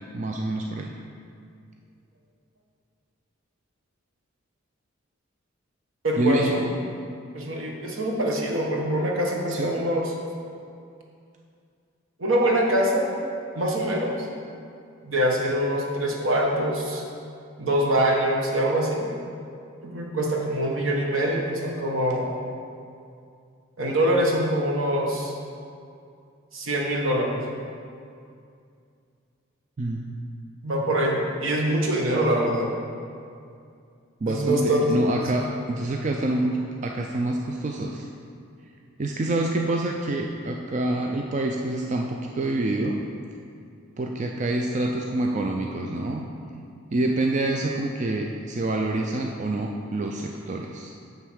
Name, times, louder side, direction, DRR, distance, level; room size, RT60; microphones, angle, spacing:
voice 1, 0.1-0.9 6.2-6.7 9.5-9.8 29.8-30.1 34.2-36.6 36.8-38.1 39.0-43.0 44.0-46.3 46.9-50.9, right 2 dB, 35° right, 1 dB, 0.4 m, -27 dB
voice 2, 6.0-6.6 7.3-10.1 12.2-13.1 13.5-14.3 15.0-17.0 17.6-19.1 19.8-22.3 23.8-25.3 26.5-27.4 30.6-32.7 34.3-34.9 35.2-35.3, right 1 dB, 70° right, -1 dB, 1.3 m, -24 dB
9.3 x 3.7 x 6.3 m, 2.4 s
head